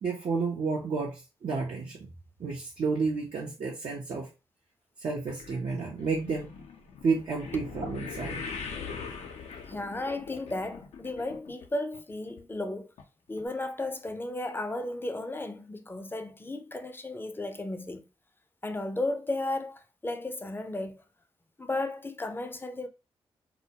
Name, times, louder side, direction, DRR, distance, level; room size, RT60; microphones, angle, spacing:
voice 1, 0.0-2.1 2.4-4.3 5.0-6.5 7.0-8.4, right 4 dB, 60° right, 0.6 m, -31 dB
sound 1, 5.3-11.7 11.9-12.4 13.0-13.1 13.4-13.5, left 5 dB, 75° left, 0.5 m, -42 dB
voice 2, 9.6-12.9 13.3-18.1 18.6-21.0 21.6-22.9, left 2 dB, 20° left, 0.5 m, -34 dB
2.2 x 2.1 x 2.7 m
supercardioid pair, 45°, 11 cm